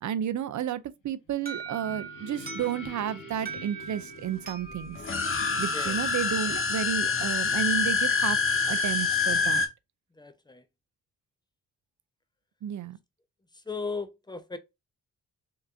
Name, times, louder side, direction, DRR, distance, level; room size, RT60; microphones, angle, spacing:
voice 1, 0.0-5.0 5.6-8.4 8.7-9.6 12.6-13.0, right 10 dB, 50° right, 0.5 m, -32 dB
sound 1, 1.3-8.0, left 3 dB, 55° left, 1.0 m, -47 dB
Alarm, 1.5-6.2, right 5 dB, 25° right, 1.3 m, -42 dB
sound 2, 5.0-9.7, left 5 dB, 35° left, 0.9 m, -26 dB
voice 2, 10.2-10.6 13.7-14.6, left 4 dB, 10° left, 0.7 m, -36 dB
3.3 x 2.9 x 2.5 m
supercardioid pair, 45°, 37 cm